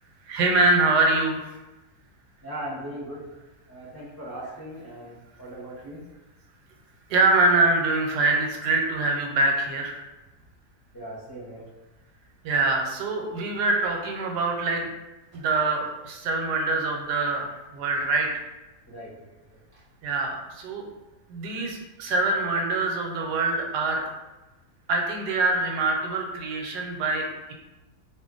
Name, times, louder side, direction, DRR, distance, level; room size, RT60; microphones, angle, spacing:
voice 1, 0.3-1.5 7.1-10.0 12.4-14.9 15.3-18.5 20.0-20.9 21.3-24.1 24.9-27.5, right 2 dB, 90° right, 1 dB, 1.2 m, -24 dB
voice 2, 2.4-3.2 3.7-6.0 10.9-11.7 18.9-19.8, right 1 dB, 20° left, -9 dB, 0.7 m, -39 dB
2.7 x 2.5 x 3.7 m, 1.1 s
omnidirectional pair, 1.7 m